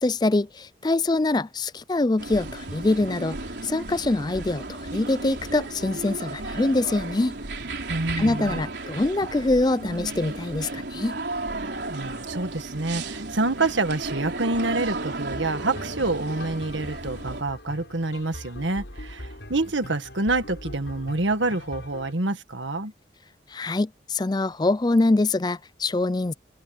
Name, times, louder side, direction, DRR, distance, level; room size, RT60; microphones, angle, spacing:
voice 1, 0.0-7.4 8.2-11.2 23.5-26.3, left 2 dB, 20° left, 0.4 m, -24 dB
sound 1, 2.2-17.4, right 2 dB, 70° right, 3.7 m, -34 dB
voice 2, 7.9-8.6 11.9-22.9, right 2 dB, 90° right, 1.8 m, -27 dB
sound 2, 15.3-22.1, left 1 dB, 75° left, 7.5 m, -42 dB
head